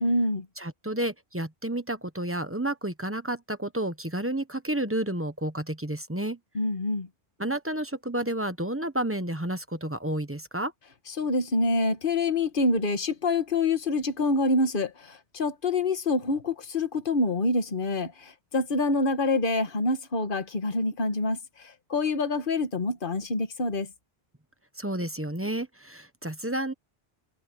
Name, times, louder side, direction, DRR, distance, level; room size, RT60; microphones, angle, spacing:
voice 1, 0.0-0.5 6.6-7.1 11.2-23.9, left 2 dB, 55° left, 1.8 m, -26 dB
voice 2, 0.6-6.4 7.4-10.7 24.8-26.7, right 1 dB, 15° right, 1.0 m, -31 dB
omnidirectional pair, 1.1 m